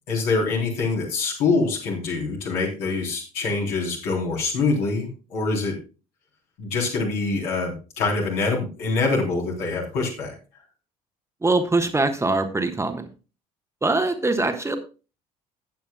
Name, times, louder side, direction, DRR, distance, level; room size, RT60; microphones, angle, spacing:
voice 1, 0.1-5.8 6.6-10.3, left 3 dB, 60° left, -1 dB, 3.7 m, -25 dB
voice 2, 11.4-13.1 13.8-14.8, right 2 dB, 15° right, 6 dB, 1.3 m, -22 dB
15.5 x 8.5 x 2.3 m, 0.32 s
figure-of-eight pair, 55°, 18 cm